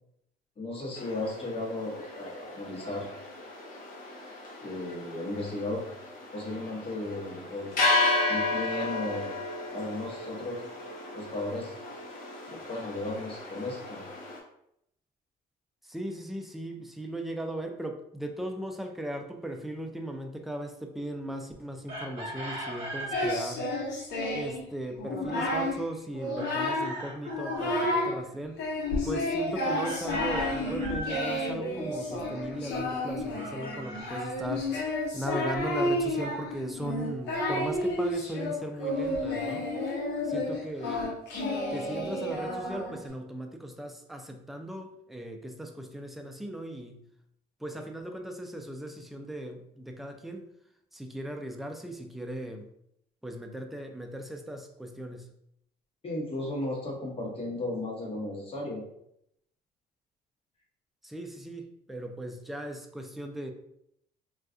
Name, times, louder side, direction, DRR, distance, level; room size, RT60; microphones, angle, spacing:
voice 1, 0.6-3.1 4.6-5.8 6.3-7.8 8.3-9.3 9.7-10.6 11.1-11.8 12.5-14.0 56.0-58.8, left 2 dB, 35° left, -3 dB, 1.1 m, -35 dB
sound 1, 0.9-14.4, left 2 dB, 55° left, 0.8 m, -33 dB
voice 2, 15.8-23.8 24.3-28.7 29.0-39.7 40.2-41.2 41.7-47.1 47.6-50.5 50.9-52.7 53.2-55.3 61.0-63.5, right 1 dB, ahead, 4 dB, 0.3 m, -38 dB
Chicken rooster, 21.9-23.4 26.4-27.7 29.8-31.4 33.3-34.9, right 1 dB, 35° right, 1.2 m, -39 dB
Singing, 23.1-24.6 25.0-25.8 26.1-27.0 27.3-28.2 28.6-43.1, left 1 dB, 85° left, 0.9 m, -31 dB
2.4 x 2.3 x 3.6 m, 0.75 s
cardioid pair, 110°, 17 cm